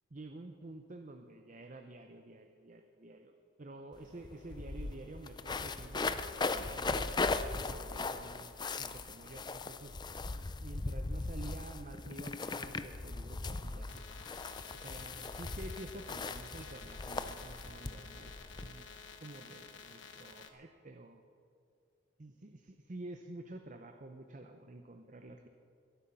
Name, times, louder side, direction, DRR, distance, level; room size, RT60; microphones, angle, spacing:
voice 1, 0.1-7.2 7.5-10.0 10.6-14.5 14.7-18.9 19.2-21.2 22.2-25.5, right 2 dB, 40° right, 6 dB, 0.6 m, -50 dB
sound 1, 3.9-4.0 4.2-18.7, left 3 dB, 20° left, 0.4 m, -38 dB
rawdata pi, 13.9-20.5, left 6 dB, 70° left, 1.2 m, -52 dB
22.0 x 8.5 x 5.5 m, 2.5 s
head